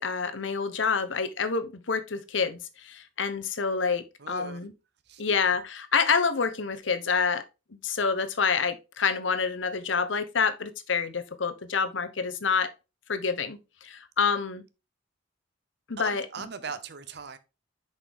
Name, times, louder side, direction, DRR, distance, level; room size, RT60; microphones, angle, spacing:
voice 1, 0.0-4.7 5.2-7.4 7.7-12.7 13.1-14.6 15.9-16.5, left 5 dB, 80° left, 1.0 m, -28 dB
voice 2, 4.2-4.6 5.1-5.2 16.0-17.4, right 5 dB, 60° right, 0.7 m, -39 dB
6.3 x 5.3 x 3.6 m
head